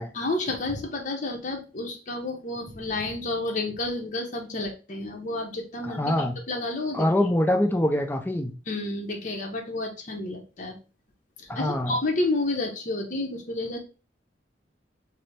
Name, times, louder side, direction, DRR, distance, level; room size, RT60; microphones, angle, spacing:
voice 1, 0.1-7.1 8.7-10.8 11.4-13.8, left 2 dB, 45° left, 1 dB, 0.7 m, -30 dB
voice 2, 5.8-6.3 6.9-8.5 11.5-12.0, left 1 dB, 10° left, 5 dB, 0.4 m, -24 dB
3.3 x 2.0 x 4.1 m, 0.33 s
head